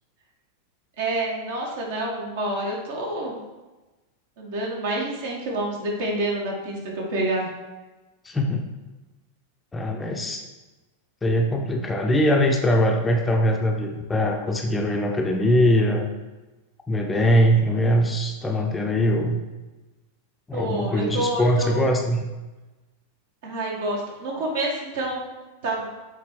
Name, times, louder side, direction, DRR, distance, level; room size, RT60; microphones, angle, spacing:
voice 1, 1.0-3.4 4.4-7.5 20.5-21.9 23.4-25.2 25.6-25.9, right 1 dB, 55° right, -1 dB, 1.8 m, -28 dB
voice 2, 8.2-8.6 9.7-10.4 11.2-16.1 16.9-19.4 20.5-22.2, equal, 15° left, 2 dB, 0.7 m, -22 dB
7.3 x 4.0 x 4.5 m, 1.1 s
figure-of-eight pair, 90°, 0 cm